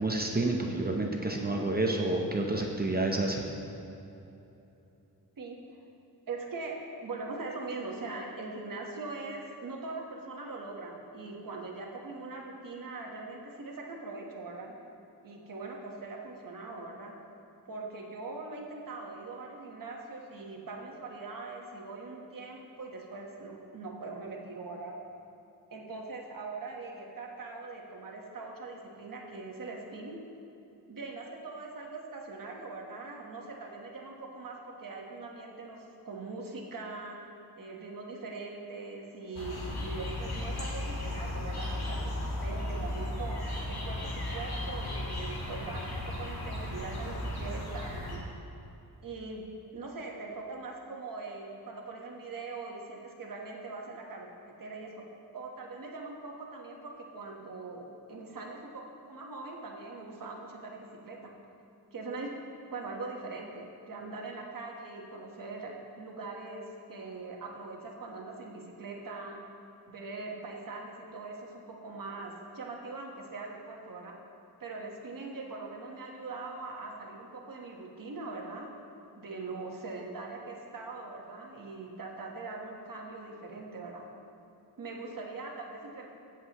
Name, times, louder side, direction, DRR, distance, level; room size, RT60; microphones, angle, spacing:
voice 1, 0.0-3.4, right 2 dB, 25° right, 1 dB, 0.7 m, -29 dB
voice 2, 6.3-6.8 7.0-14.7 15.2-17.2 17.7-24.9 25.7-30.2 30.9-37.2 37.6-43.4 43.7-48.3 49.0-49.5 49.7-54.3 54.6-55.1 55.3-61.3 61.9-62.3 62.7-69.4 69.9-74.2 74.6-78.7 79.2-84.1 84.8-86.1, right 3 dB, 60° right, 0 dB, 1.3 m, -41 dB
sound 1, 39.3-48.2, left 1 dB, 80° left, 2.1 m, -35 dB
16.5 x 7.4 x 3.0 m, 2.9 s
wide cardioid pair, 165°, 37 cm